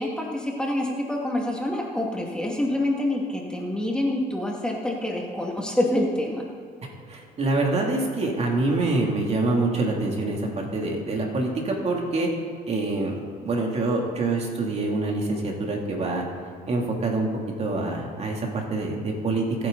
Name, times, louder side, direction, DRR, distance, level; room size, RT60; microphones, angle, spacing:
voice 1, 0.0-6.4, left 1 dB, 5° left, -2 dB, 2.2 m, -26 dB
voice 2, 7.1-12.3 12.7-13.1 13.4-16.2 16.7-17.3 17.6-19.7, right 2 dB, 40° right, 0 dB, 2.9 m, -25 dB
24.5 x 9.6 x 4.0 m, 2.3 s
cardioid pair, 110°, 17 cm